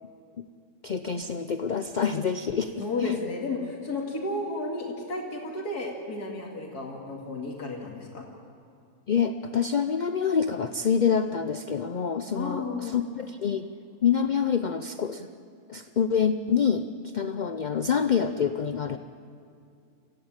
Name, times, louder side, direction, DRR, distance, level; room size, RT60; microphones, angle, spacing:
voice 1, 0.8-3.2 9.1-13.7 14.0-15.3 15.7-16.9 17.1-19.0, left 7 dB, 60° left, 9 dB, 0.4 m, -26 dB
voice 2, 2.8-8.2 12.3-13.0, left 2 dB, 80° left, -1 dB, 2.9 m, -33 dB
26.5 x 15.5 x 8.9 m, 2.5 s
omnidirectional pair, 1.6 m